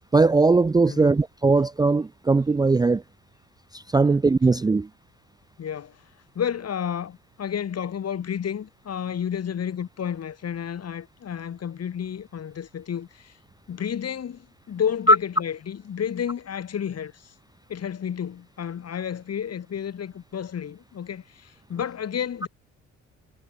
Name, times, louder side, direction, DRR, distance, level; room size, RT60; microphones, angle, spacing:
voice 1, 0.1-3.0 3.7-4.9 15.1-15.2, right 3 dB, 15° right, 0.4 m, -19 dB
voice 2, 5.6-6.0 6.4-13.3 13.7-17.3 17.7-22.5, left 8 dB, 55° left, 5.3 m, -31 dB
cardioid pair, 90°, 30 cm